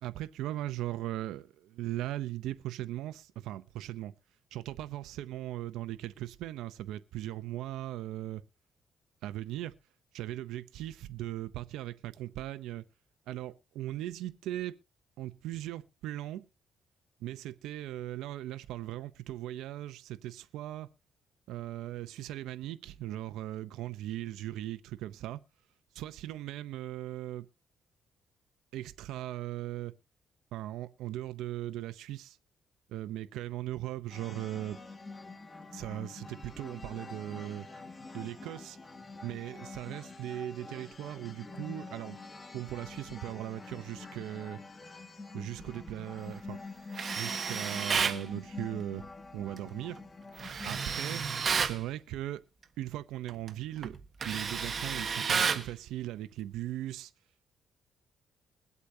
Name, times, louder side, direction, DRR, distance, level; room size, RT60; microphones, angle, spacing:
voice 1, 0.0-4.1 4.5-8.4 9.2-9.7 10.1-12.9 13.3-14.7 15.2-16.4 17.2-20.9 21.5-25.4 26.0-27.5 28.7-30.0 30.5-32.4 32.9-34.8 35.7-37.7 38.1-38.8 39.2-42.2 42.5-44.6 45.3-46.6 47.2-49.1 49.3-50.0 50.7-51.3 51.6-52.4 52.8-54.0 54.2-57.1, right 14 dB, 90° right, 0.7 m, -38 dB
sound 1, 34.1-50.9, left 3 dB, 25° left, 2.0 m, -46 dB
Tools, 46.9-48.2 50.4-51.8 53.3-53.5 53.8-55.7, right 6 dB, 45° right, 1.4 m, -31 dB
22.0 x 8.3 x 2.7 m
cardioid pair, 90°, 0 cm